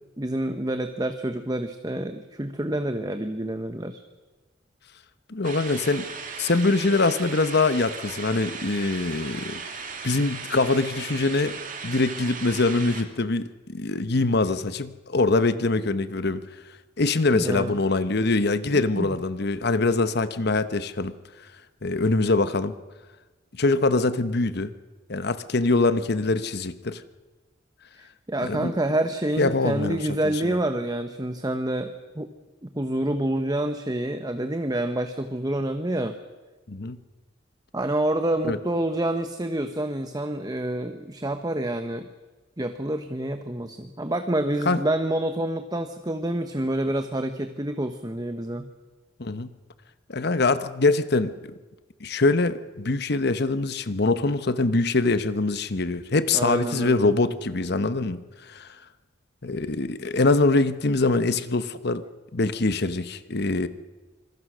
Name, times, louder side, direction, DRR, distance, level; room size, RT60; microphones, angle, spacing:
voice 1, 0.2-4.0 17.3-17.8 19.0-19.1 28.0-32.3 32.6-36.2 37.7-42.1 42.6-48.7 56.3-57.1, right 1 dB, 20° right, 8 dB, 1.1 m, -28 dB
voice 2, 5.3-6.1 6.4-9.6 10.0-11.5 11.8-16.4 17.0-21.1 21.8-22.7 23.5-24.7 25.1-27.0 28.4-28.7 29.4-30.5 36.7-37.0 38.5-38.6 44.6-44.8 49.2-49.5 50.1-51.3 52.0-58.2 58.5-58.7 59.4-62.0 62.3-63.7, left 3 dB, 60° left, 13 dB, 1.1 m, -23 dB
sound 1, 5.4-13.0, right 5 dB, 45° right, 2.6 m, -37 dB
26.0 x 22.0 x 6.3 m, 1.2 s
head